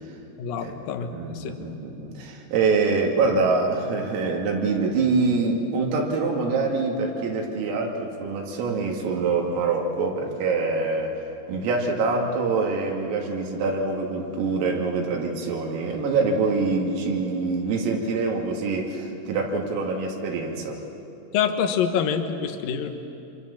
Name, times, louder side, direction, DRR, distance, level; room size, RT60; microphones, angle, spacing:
voice 1, 0.4-1.5 21.3-22.9, left 7 dB, 75° left, 6 dB, 2.0 m, -26 dB
voice 2, 1.1-11.1 11.5-20.8, right 4 dB, 85° right, 0 dB, 5.1 m, -25 dB
26.0 x 25.0 x 7.3 m, 2.8 s
omnidirectional pair, 5.8 m